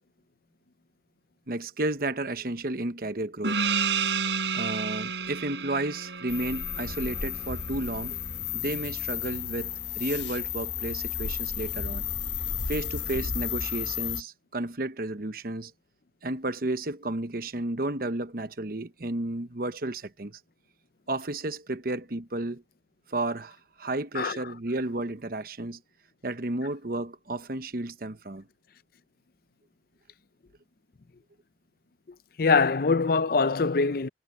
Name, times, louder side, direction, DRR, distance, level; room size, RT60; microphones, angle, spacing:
voice 1, 1.5-3.6 4.5-8.2 8.5-12.0 12.7-15.7 16.2-20.4 21.1-22.6 23.1-25.8 26.2-28.5, right 2 dB, 50° right, 1.1 m, -32 dB
Gong, 3.4-8.4, right 5 dB, 75° right, 4.0 m, -31 dB
sound 1, 6.3-14.2, left 8 dB, 75° left, 1.4 m, -33 dB
voice 2, 32.4-34.1, left 4 dB, 50° left, 0.5 m, -23 dB
head